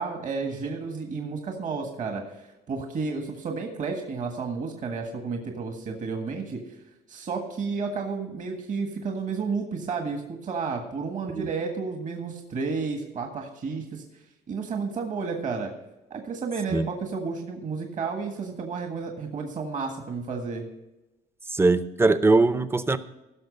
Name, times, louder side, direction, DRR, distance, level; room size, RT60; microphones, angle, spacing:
voice 1, 0.0-6.6 7.1-14.0 14.5-15.7 16.1-20.7, right 4 dB, 50° right, 4 dB, 1.7 m, -31 dB
voice 2, 21.5-23.0, right 3 dB, 15° right, 13 dB, 0.6 m, -21 dB
16.5 x 6.3 x 5.3 m, 0.98 s
cardioid pair, 110°, 17 cm